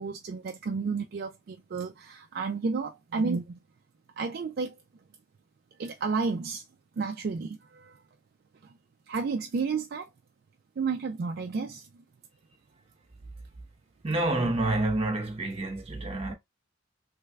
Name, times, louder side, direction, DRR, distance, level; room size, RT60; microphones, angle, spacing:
voice 1, 0.0-3.6 4.2-4.7 5.8-6.6 7.0-7.9 9.1-10.1 10.8-11.9, right 4 dB, 50° right, 0.3 m, -31 dB
voice 2, 14.0-16.3, right 2 dB, 30° right, 0.9 m, -28 dB
3.3 x 3.2 x 2.3 m
head